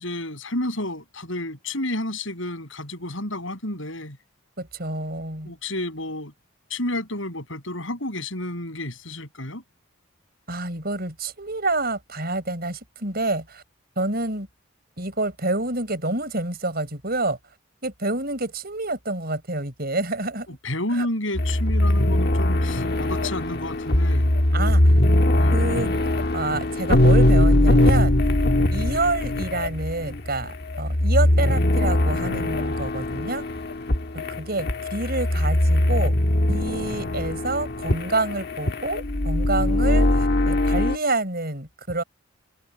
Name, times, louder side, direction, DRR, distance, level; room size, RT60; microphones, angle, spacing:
voice 1, 0.0-4.2 5.5-6.3 6.7-9.6 20.6-24.8 25.3-25.6, left 1 dB, 70° left, 7.3 m, -31 dB
voice 2, 4.6-5.5 10.5-13.6 14.0-14.5 15.0-17.4 17.8-20.5 20.9-21.1 24.5-24.8 25.5-25.9 26.3-28.2 28.7-33.4 34.1-36.1 36.5-42.0, right 2 dB, 45° right, 6.4 m, -28 dB
sound 1, 21.4-41.0, left 1 dB, 50° left, 1.5 m, -21 dB
head